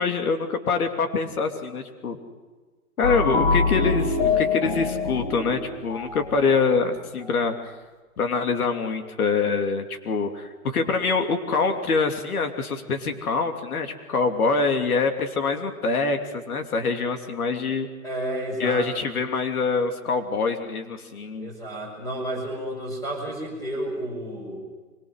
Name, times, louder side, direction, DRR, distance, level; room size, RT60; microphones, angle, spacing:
voice 1, 0.0-2.2 3.0-7.7 8.2-17.9 18.6-21.5, left 4 dB, 75° left, 5 dB, 3.0 m, -25 dB
sound 1, 3.0-6.6, left 4 dB, 40° left, 3.3 m, -25 dB
voice 2, 18.0-18.9 21.4-24.6, right 1 dB, 10° left, 2 dB, 5.7 m, -31 dB
24.5 x 22.5 x 6.5 m, 1.3 s
hypercardioid pair, 170°, 44 cm